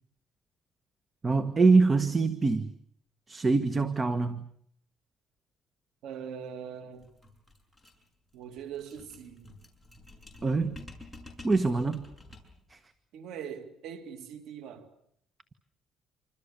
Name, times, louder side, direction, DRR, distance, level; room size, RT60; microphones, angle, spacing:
voice 1, 1.2-2.7 3.3-4.5 10.4-10.8 11.4-12.0 12.7-12.8, right 3 dB, 25° right, 1.4 m, -24 dB
voice 2, 6.0-7.1 8.3-9.5 13.1-14.9, right 8 dB, 80° right, 2.5 m, -42 dB
sound 1, 7.0-12.7, left 2 dB, ahead, 6.7 m, -50 dB
27.5 x 25.5 x 7.0 m
cardioid pair, 115°, 0 cm